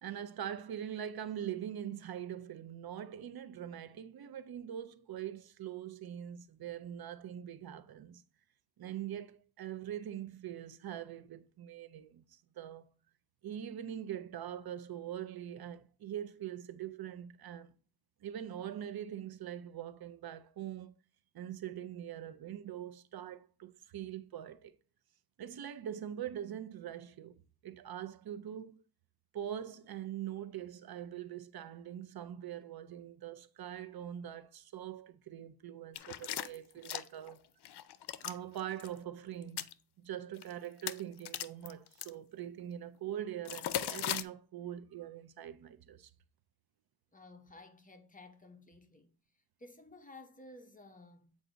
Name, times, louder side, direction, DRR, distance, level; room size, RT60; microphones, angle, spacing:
voice 1, 0.0-8.2 8.8-12.9 13.4-17.7 18.2-21.0 21.3-24.7 25.4-27.4 27.6-28.8 29.3-37.4 38.2-39.7 40.0-46.1, right 10 dB, 65° right, 0.5 m, -43 dB
sound 1, 36.0-37.3 37.6-38.4 38.7-38.9 39.4-39.7 40.4-40.5 40.8-42.1 43.4-44.2, left 11 dB, 80° left, 0.5 m, -37 dB
voice 2, 47.1-49.1 49.6-51.4, left 2 dB, 20° left, 0.8 m, -54 dB
7.9 x 2.6 x 4.9 m
wide cardioid pair, 130°, 39 cm